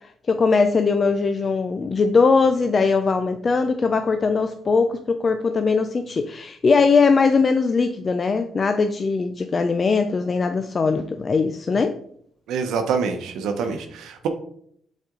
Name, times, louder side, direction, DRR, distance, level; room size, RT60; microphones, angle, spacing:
voice 1, 0.3-12.0, left 4 dB, 40° left, 8 dB, 0.4 m, -20 dB
voice 2, 12.5-14.3, right 5 dB, 85° right, 6 dB, 0.8 m, -26 dB
7.8 x 4.2 x 3.8 m, 0.65 s
cardioid pair, 90°, 0 cm